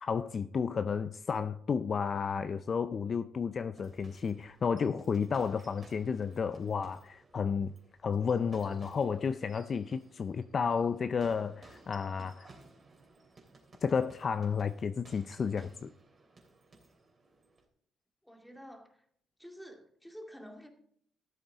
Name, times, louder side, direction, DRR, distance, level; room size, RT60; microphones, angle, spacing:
voice 1, 0.0-7.7 8.0-12.5 13.8-15.9, left 6 dB, 45° left, 0.5 m, -32 dB
sound 1, 3.7-17.7, right 3 dB, 40° right, 3.1 m, -59 dB
voice 2, 18.2-19.1 19.4-20.7, equal, 5° left, 2.2 m, -49 dB
13.5 x 8.3 x 3.9 m
cardioid pair, 90°, 0 cm